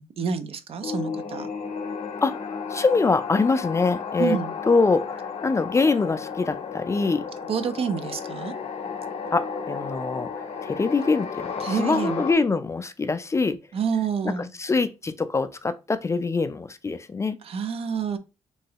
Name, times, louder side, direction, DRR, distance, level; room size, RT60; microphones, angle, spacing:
voice 1, 0.0-1.5 4.2-4.5 7.5-8.5 11.6-12.2 13.7-14.5 17.4-18.2, right 6 dB, 55° right, 0.5 m, -28 dB
sound 1, 0.8-12.3, left 6 dB, 65° left, 0.6 m, -33 dB
voice 2, 2.7-4.4 4.7-7.3 9.3-10.3 10.6-13.6 14.2-17.4, left 4 dB, 25° left, 0.3 m, -24 dB
3.0 x 2.7 x 2.8 m
cardioid pair, 65°, 12 cm